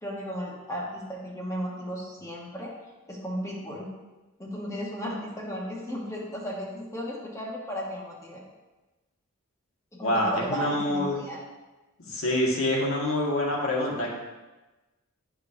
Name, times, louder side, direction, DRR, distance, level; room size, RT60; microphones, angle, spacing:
voice 1, 0.0-2.7 3.1-3.9 4.4-8.4 9.9-11.4, equal, 15° left, -4 dB, 1.1 m, -35 dB
voice 2, 10.0-11.2 12.0-14.1, left 1 dB, 70° left, -2 dB, 1.6 m, -26 dB
10.0 x 5.0 x 2.6 m, 1.2 s
head